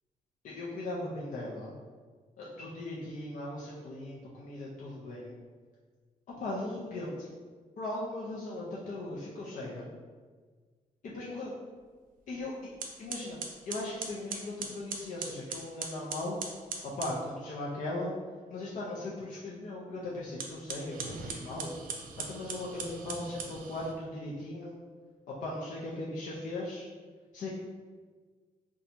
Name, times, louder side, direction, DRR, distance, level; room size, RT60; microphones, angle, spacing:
voice 1, 0.4-1.7 2.4-5.4 6.3-7.4 7.8-9.9 11.0-11.5 12.3-12.6 13.0-13.4 13.7-16.4 16.8-18.1 18.5-21.7 22.2-24.8 25.3-26.9 27.3-27.5, left 2 dB, 65° left, -6 dB, 0.6 m, -38 dB
sound 1, 12.3-12.4 12.8-17.2 20.3-24.0, right 4 dB, 75° right, 0.5 m, -40 dB
2.7 x 2.3 x 4.1 m, 1.5 s
cardioid pair, 125°, 14 cm